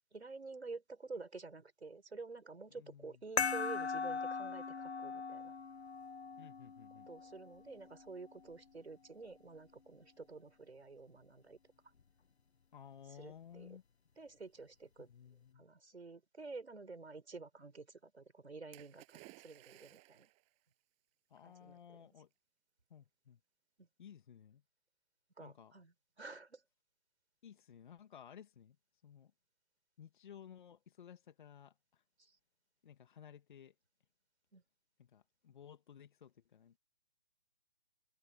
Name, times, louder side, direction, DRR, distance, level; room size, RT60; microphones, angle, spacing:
voice 1, 0.1-5.5 7.1-11.6 13.2-13.7 14.2-15.1 15.6-20.3 21.4-22.0 23.8-23.9 25.4-26.6 32.2-32.3 34.5-34.6, right 3 dB, 85° right, 5.3 m, -50 dB
voice 2, 2.7-3.2 6.4-7.1 12.7-13.8 15.0-15.7 21.3-22.3 22.9-23.4 24.0-24.6 25.4-25.7 27.4-28.8 29.0-29.3 30.0-32.0 32.8-33.7 35.0-36.8, left 8 dB, 50° left, 1.7 m, -56 dB
sound 1, 3.4-8.4, left 5 dB, 90° left, 1.0 m, -40 dB
Splash splatter, 18.7-20.5 21.5-21.6, right 26 dB, 20° right, 7.4 m, -59 dB
open air
hypercardioid pair, 150°, 32 cm